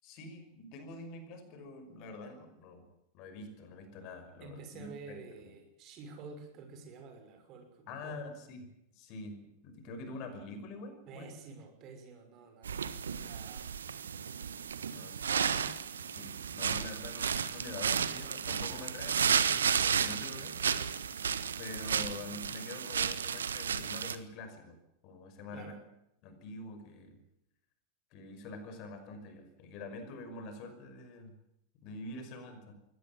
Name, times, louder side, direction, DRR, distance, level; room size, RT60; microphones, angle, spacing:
voice 1, 0.0-2.9 3.1-5.2 7.9-8.7 8.9-9.4 9.6-11.3 14.9-15.5 16.1-20.6 21.6-24.8 25.0-25.7 26.2-27.2 28.1-31.3 31.8-32.7, left 2 dB, 40° left, 8 dB, 5.7 m, -46 dB
voice 2, 4.4-8.2 11.1-12.9 13.2-13.7 15.3-15.8 25.5-25.8, right 4 dB, 35° right, 6 dB, 5.9 m, -49 dB
sound 1, 12.6-24.2, right 7 dB, 70° right, 1.5 m, -33 dB
23.5 x 18.0 x 7.5 m, 0.81 s
figure-of-eight pair, 90°, 0 cm